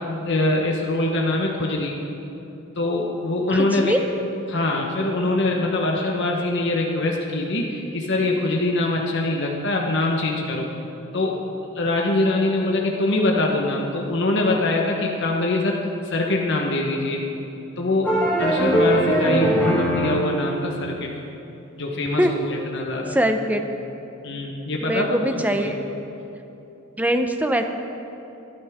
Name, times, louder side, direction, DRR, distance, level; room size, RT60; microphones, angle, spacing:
voice 1, 0.0-1.9 2.8-3.9 4.5-10.7 11.1-11.4 11.7-15.8 16.1-17.2 17.8-21.1 21.7-23.2 24.2-25.7, left 2 dB, 55° left, 0 dB, 1.2 m, -23 dB
voice 2, 3.5-4.0 22.2-22.4 23.1-23.6 24.8-25.8 27.0-27.6, equal, 5° right, 6 dB, 0.7 m, -22 dB
sound 1, 18.0-20.2, right 1 dB, 10° left, 2.5 m, -20 dB
23.5 x 10.0 x 3.6 m, 2.9 s
head